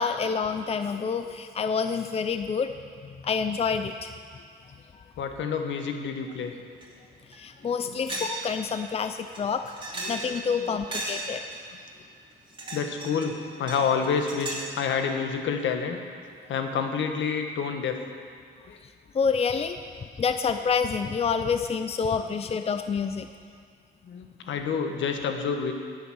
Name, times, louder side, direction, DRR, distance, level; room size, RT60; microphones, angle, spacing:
voice 1, 0.0-2.7 3.2-4.1 4.9-5.0 7.3-9.6 10.1-11.4 19.1-19.8 20.2-23.3, left 6 dB, 30° left, 8 dB, 0.6 m, -27 dB
voice 2, 5.2-6.5 7.8-8.3 9.9-11.1 11.7-11.8 12.7-16.0 16.5-18.0 18.7-18.8 22.1-22.5 24.0-25.7, left 6 dB, 70° left, 5 dB, 1.4 m, -29 dB
sound 1, 6.8-6.9 7.3-7.4 8.1-8.4 8.7-8.8 9.3-10.5 10.9-11.6 12.3-13.3 13.7-14.7, right 2 dB, 25° right, 3.0 m, -35 dB
10.5 x 8.2 x 8.9 m, 2.2 s
cardioid pair, 90°, 20 cm